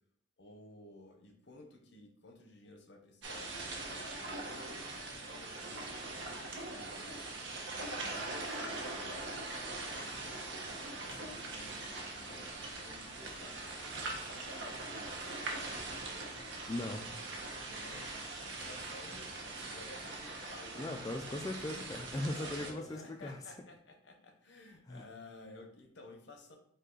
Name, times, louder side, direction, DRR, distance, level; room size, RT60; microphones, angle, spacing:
voice 1, 0.4-3.6 4.1-7.1 7.7-9.4 11.0-15.5 17.6-18.1 18.5-21.6 22.2-26.6, left 2 dB, 65° left, 4 dB, 0.8 m, -54 dB
sound 1, 3.2-22.7, right 2 dB, 70° right, 0.9 m, -42 dB
voice 2, 16.7-17.1 20.8-23.4 24.9-25.0, left 1 dB, 20° left, 3 dB, 0.3 m, -39 dB
5.2 x 2.3 x 3.9 m, 0.68 s
head